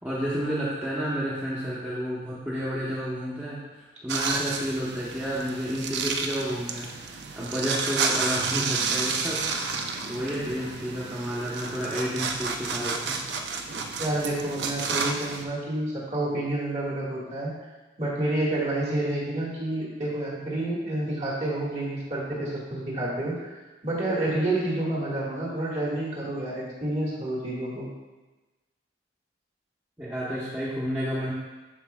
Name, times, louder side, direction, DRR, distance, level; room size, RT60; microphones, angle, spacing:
voice 1, 0.0-6.9 7.3-9.4 10.1-13.2 30.0-31.3, equal, 10° right, -9 dB, 1.0 m, -30 dB
sound 1, 4.1-15.4, right 4 dB, 65° right, 0.5 m, -31 dB
voice 2, 14.0-17.5 18.0-27.9, right 1 dB, 35° right, -5 dB, 1.7 m, -29 dB
12.0 x 4.6 x 2.3 m, 1.2 s
head